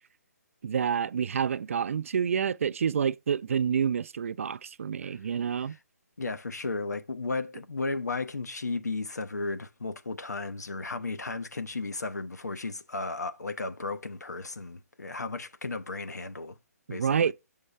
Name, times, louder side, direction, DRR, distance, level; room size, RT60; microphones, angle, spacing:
voice 1, 0.6-5.8 16.9-17.3, right 7 dB, 50° right, 0.4 m, -28 dB
voice 2, 6.2-16.6 16.9-17.3, left 3 dB, 75° left, 0.8 m, -34 dB
7.0 x 5.5 x 3.2 m
figure-of-eight pair, 135°, 9 cm